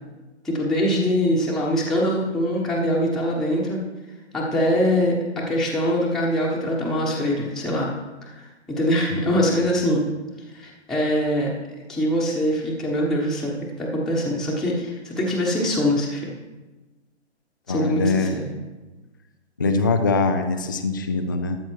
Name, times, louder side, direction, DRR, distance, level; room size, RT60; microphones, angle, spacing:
voice 1, 0.4-3.8 4.3-7.9 8.2-10.0 10.5-11.5 11.9-16.3 17.7-18.4, equal, ahead, -5 dB, 1.1 m, -23 dB
voice 2, 9.1-9.5 17.7-18.3 19.6-21.6, left 3 dB, 20° left, 6 dB, 0.3 m, -23 dB
13.0 x 7.3 x 4.6 m, 1.2 s
hypercardioid pair, 145°, 35 cm